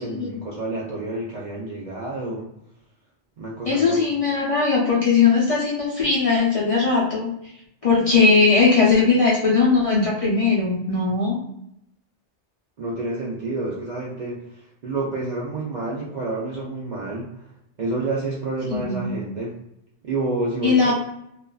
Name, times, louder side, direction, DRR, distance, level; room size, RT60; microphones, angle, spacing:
voice 1, 0.0-2.5 3.4-4.0 12.8-17.5 17.8-19.6 20.0-20.9, right 2 dB, 55° right, -6 dB, 0.5 m, -29 dB
voice 2, 3.7-7.3 7.8-11.4 18.7-19.1 20.6-20.9, left 4 dB, 40° left, -6 dB, 0.5 m, -19 dB
2.4 x 2.3 x 2.2 m, 0.78 s
omnidirectional pair, 1.2 m